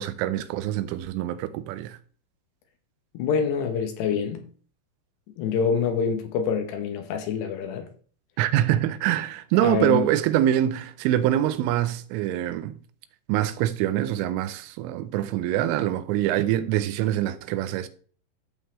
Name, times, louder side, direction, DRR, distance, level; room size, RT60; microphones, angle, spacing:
voice 1, 0.0-2.0 8.4-12.8 13.3-17.9, right 12 dB, 80° right, 3.1 m, -24 dB
voice 2, 3.1-4.4 5.4-7.9 9.6-10.1, left 6 dB, 75° left, 2.6 m, -26 dB
14.5 x 5.4 x 3.2 m
omnidirectional pair, 6.0 m